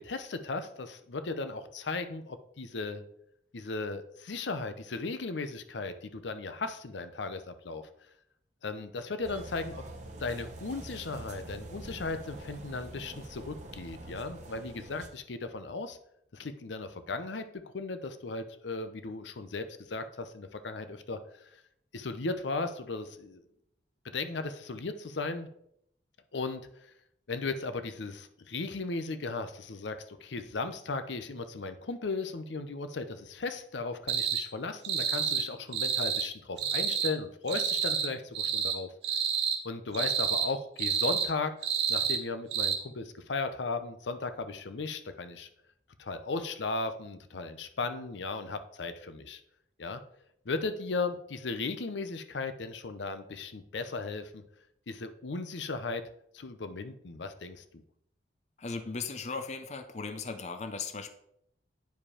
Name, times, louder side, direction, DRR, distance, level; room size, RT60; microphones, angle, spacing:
voice 1, 0.0-3.0 3.5-7.9 8.6-9.8 10.2-16.0 16.3-17.5 17.7-21.2 21.5-21.6 21.9-23.4 24.1-25.5 26.3-26.9 27.3-38.9 39.6-41.5 41.9-45.5 46.0-49.4 49.8-50.0 50.5-54.4 54.9-56.0 56.3-57.8, left 3 dB, 80° left, 10 dB, 0.7 m, -36 dB
sound 1, 9.2-15.1, right 2 dB, 40° right, 1.1 m, -45 dB
sound 2, 34.1-34.4 34.8-35.5 35.7-36.3 36.6-37.1 37.5-38.1 38.3-38.8 39.0-39.6 39.9-40.5 40.8-41.3 41.6-42.2 42.5-42.8, right 7 dB, 65° right, 1.2 m, -29 dB
voice 2, 58.6-61.1, left 4 dB, 40° left, 9 dB, 0.5 m, -37 dB
9.3 x 5.1 x 4.9 m, 0.74 s
head